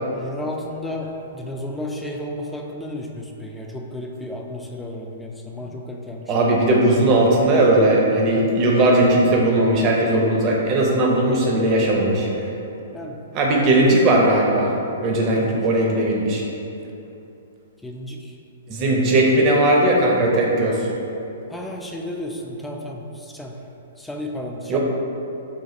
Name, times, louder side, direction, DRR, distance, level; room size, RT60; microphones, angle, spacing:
voice 1, 0.1-6.3 8.3-8.5 12.9-13.2 15.3-15.7 17.8-18.3 21.5-23.5 24.0-24.8, left 1 dB, 5° left, 0 dB, 0.4 m, -33 dB
voice 2, 6.3-12.3 13.3-14.7 15.0-16.4 18.7-20.9 24.7-24.8, right 1 dB, 35° right, -1 dB, 0.7 m, -18 dB
4.0 x 2.4 x 4.0 m, 2.9 s
hypercardioid pair, 130°, 0 cm